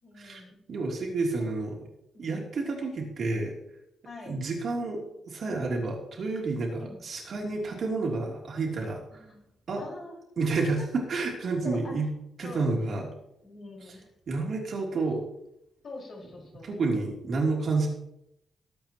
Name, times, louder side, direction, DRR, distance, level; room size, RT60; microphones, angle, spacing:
voice 1, 0.0-0.6 1.4-1.5 2.1-2.4 4.0-4.3 6.8-7.0 9.1-9.4 9.8-10.2 11.6-12.0 12.4-12.7 13.4-14.0 15.8-16.7, left 3 dB, 40° left, -3 dB, 5.2 m, -44 dB
voice 2, 0.7-1.8 2.2-3.5 4.3-9.2 9.7-9.8 10.4-12.1 12.4-13.1 14.3-15.2 16.6-17.9, right 3 dB, 45° right, -1 dB, 3.2 m, -30 dB
20.0 x 8.6 x 3.0 m, 0.80 s
cardioid pair, 155°, 0 cm